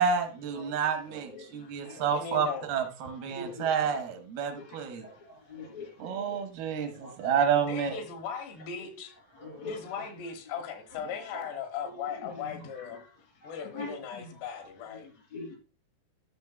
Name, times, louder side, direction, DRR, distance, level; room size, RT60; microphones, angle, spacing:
voice 1, 0.0-5.0 6.0-7.9, right 7 dB, 75° right, 2.8 m, -29 dB
voice 2, 2.1-2.7 7.6-9.1 9.6-13.0 13.4-15.1, left 6 dB, 85° left, 3.3 m, -38 dB
voice 3, 3.3-3.9 4.6-6.4 6.8-7.1 9.4-9.7 12.2-12.3 13.7-14.3 15.3-15.6, left 3 dB, 45° left, 4.0 m, -43 dB
11.5 x 6.8 x 2.2 m
omnidirectional pair, 4.6 m